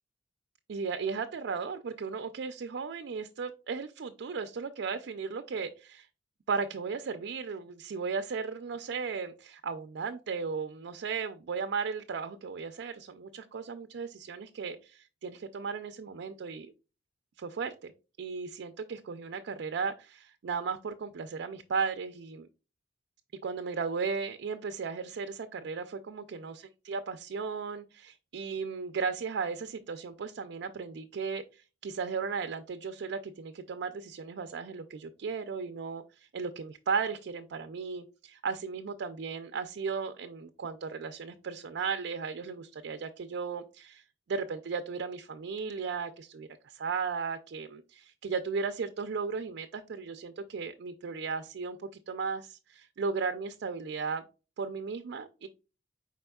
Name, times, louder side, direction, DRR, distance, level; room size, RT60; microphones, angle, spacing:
voice 1, 0.7-6.1 6.5-16.7 17.4-17.9 18.2-22.5 23.4-44.0 44.3-51.8 52.1-54.2 54.6-55.5, right 5 dB, 65° right, 8 dB, 0.4 m, -36 dB
4.7 x 4.3 x 2.2 m, 0.33 s
head